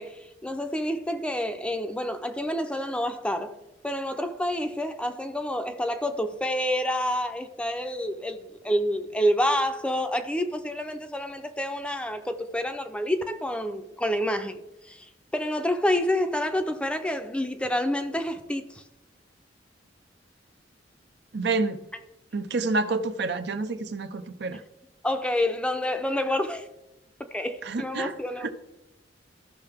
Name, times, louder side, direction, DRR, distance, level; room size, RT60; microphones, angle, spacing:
voice 1, 0.0-3.5 3.8-14.6 14.8-15.1 15.3-18.8 25.0-26.7 27.3-28.5, left 1 dB, 5° left, 0.6 m, -28 dB
voice 2, 21.3-21.8 22.3-24.6 27.6-28.1 28.4-28.5, right 3 dB, 65° right, 0.7 m, -28 dB
14.5 x 5.7 x 3.5 m
head